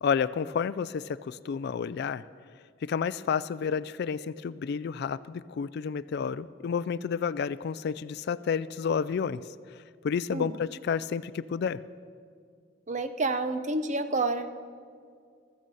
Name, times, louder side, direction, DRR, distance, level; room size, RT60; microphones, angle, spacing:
voice 1, 0.0-2.2 2.8-9.4 9.7-11.8, left 6 dB, 55° left, 17 dB, 0.3 m, -30 dB
voice 2, 12.9-14.6, right 3 dB, 35° right, 9 dB, 0.7 m, -29 dB
15.0 x 14.0 x 4.1 m, 2.3 s
head